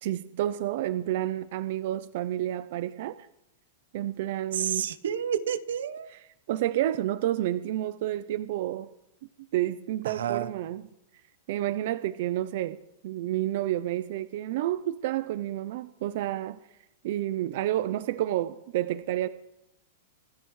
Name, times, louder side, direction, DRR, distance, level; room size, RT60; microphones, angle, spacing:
voice 1, 0.0-3.3 3.9-4.9 6.1-6.2 6.5-8.9 9.5-10.8 11.5-16.6 17.0-19.3, right 13 dB, 50° right, 14 dB, 0.5 m, -30 dB
voice 2, 4.5-6.1 10.0-10.5, right 9 dB, 85° right, 12 dB, 0.9 m, -30 dB
26.0 x 12.5 x 3.2 m, 0.88 s
supercardioid pair, 165°, 0 cm